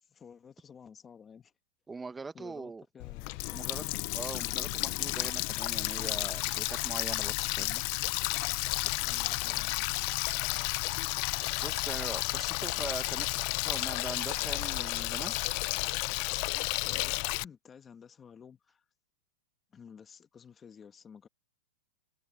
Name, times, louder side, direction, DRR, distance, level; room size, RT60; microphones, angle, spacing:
voice 1, 0.0-1.5 2.3-4.1 9.0-10.1 16.5-17.2 17.4-18.8 19.7-21.3, left 7 dB, 15° left, 1.6 m, -53 dB
voice 2, 1.9-2.8 3.5-3.8 4.1-7.8 11.6-15.3, right 4 dB, 10° right, 1.1 m, -42 dB
Water tap faucet, 3.0-17.4, left 27 dB, 45° left, 0.5 m, -32 dB
sound 1, 8.1-15.6, left 10 dB, 85° left, 4.2 m, -47 dB
hypercardioid pair, 145°, 0 cm